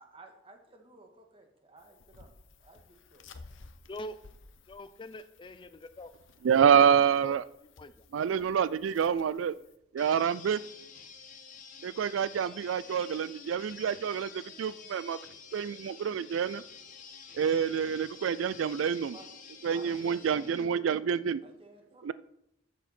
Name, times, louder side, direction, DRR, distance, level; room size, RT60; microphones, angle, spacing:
voice 1, 0.0-2.3 2.6-3.7 19.0-19.3 19.7-21.0 21.4-22.1, right 2 dB, 30° right, 3 dB, 1.7 m, -55 dB
sound 1, 1.8-9.8, left 3 dB, 85° left, 0.9 m, -56 dB
voice 2, 3.9-4.2 4.7-6.1 6.8-7.0 7.2-7.4 7.8-8.6 12.5-12.6, left 1 dB, 25° left, 13 dB, 0.4 m, -45 dB
voice 3, 6.4-7.4 8.1-9.6 9.9-10.6 11.8-15.2 15.5-16.6 17.3-19.2 19.6-21.4 22.0-22.1, right 7 dB, 90° right, 18 dB, 0.4 m, -27 dB
sound 2, 10.0-20.7, left 6 dB, 45° left, 1.3 m, -49 dB
13.0 x 7.2 x 4.3 m, 0.81 s
head